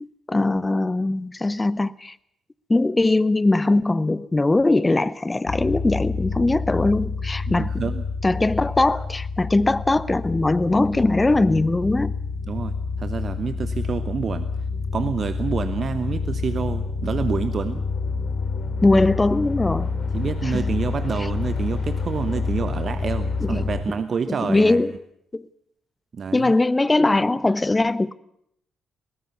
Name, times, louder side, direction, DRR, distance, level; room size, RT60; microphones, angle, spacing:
voice 1, 0.3-2.1 2.7-7.7 8.2-12.1 18.8-19.9 20.4-20.7 23.5-23.6 24.3-24.9 25.3-25.4 26.3-28.1, left 2 dB, 20° left, 0.7 m, -20 dB
sound 1, 5.5-23.8, left 4 dB, 50° left, 2.9 m, -28 dB
voice 2, 7.5-8.0 12.5-14.5 14.9-17.8 20.1-24.8 26.1-26.5, right 6 dB, 50° right, 1.0 m, -28 dB
21.0 x 19.0 x 6.9 m
hypercardioid pair, 45°, 0 cm